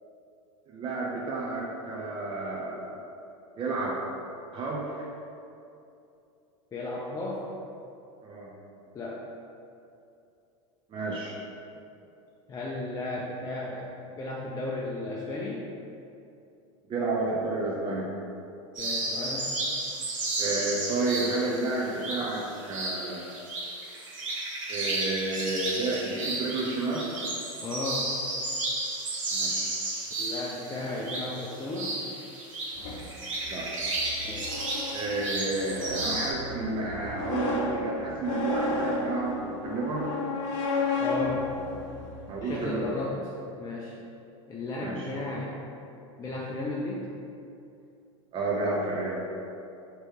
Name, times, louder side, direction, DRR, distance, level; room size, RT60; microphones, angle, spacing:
voice 1, 0.7-3.1 3.6-4.0 4.5-5.1 8.2-8.5 10.9-11.4 16.9-18.1 20.4-23.3 24.7-27.1 29.3-29.7 33.4-33.7 34.9-40.1 42.3-42.9 44.8-45.1 48.3-49.2, right 2 dB, 30° right, -4 dB, 0.7 m, -31 dB
voice 2, 6.7-7.5 8.9-9.2 12.5-15.7 18.7-19.5 27.6-28.1 30.2-31.9 34.2-34.6 41.0-41.5 42.4-43.2 43.6-43.9 44.5-45.6 46.2-47.1, left 2 dB, 20° left, -4 dB, 0.5 m, -34 dB
sound 1, 18.8-36.3, right 2 dB, 85° right, 1.0 m, -33 dB
sound 2, 32.8-42.7, left 3 dB, 65° left, 0.6 m, -33 dB
3.1 x 3.0 x 4.6 m, 2.7 s
hypercardioid pair, 100°, 16 cm